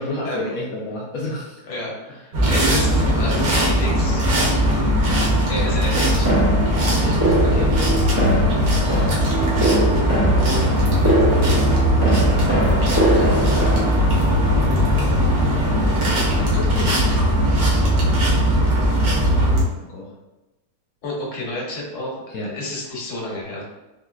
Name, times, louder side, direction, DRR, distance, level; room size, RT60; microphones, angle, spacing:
voice 1, 0.0-1.6 6.9-8.6 11.5-12.5 16.1-17.9 19.7-20.1 22.3-22.5, left 2 dB, 70° left, -3 dB, 0.9 m, -32 dB
voice 2, 1.7-4.2 4.5-4.9 5.5-6.4 8.1-8.2 21.0-22.2 22.5-23.6, left 1 dB, 50° left, -3 dB, 1.2 m, -31 dB
sound 1, 2.3-19.6, equal, 65° right, 1.4 m, -19 dB
sound 2, 6.2-13.9, right 1 dB, 35° right, 0.4 m, -23 dB
4.0 x 2.8 x 2.3 m, 1.0 s
omnidirectional pair, 1.8 m